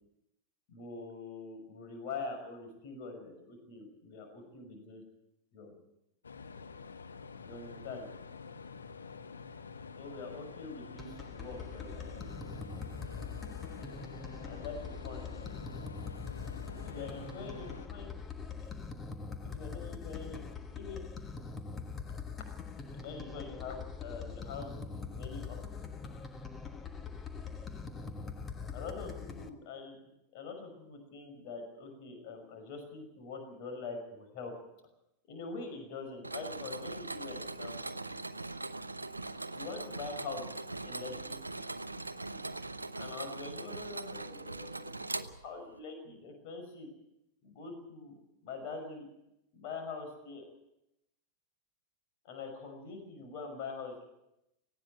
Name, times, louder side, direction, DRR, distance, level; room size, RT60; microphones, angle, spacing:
voice 1, 0.7-5.0 5.5-5.8 7.4-8.1 10.0-12.4 14.4-15.3 16.7-18.1 18.6-18.7 19.4-21.0 22.9-24.7 25.0-25.6 28.7-30.0 30.3-34.5 35.3-38.0 39.5-41.4 42.9-46.9 47.4-48.1 48.4-49.1 49.5-50.4 52.2-54.2, left 4 dB, 45° left, 4 dB, 5.9 m, -44 dB
sound 1, 6.2-17.9, left 5 dB, 70° left, 1.4 m, -47 dB
sound 2, 11.0-29.5, left 5 dB, 20° left, 1.4 m, -43 dB
Mechanisms, 36.2-45.8, right 2 dB, 80° right, 0.8 m, -41 dB
18.5 x 16.0 x 9.1 m, 0.86 s
figure-of-eight pair, 90°, 0 cm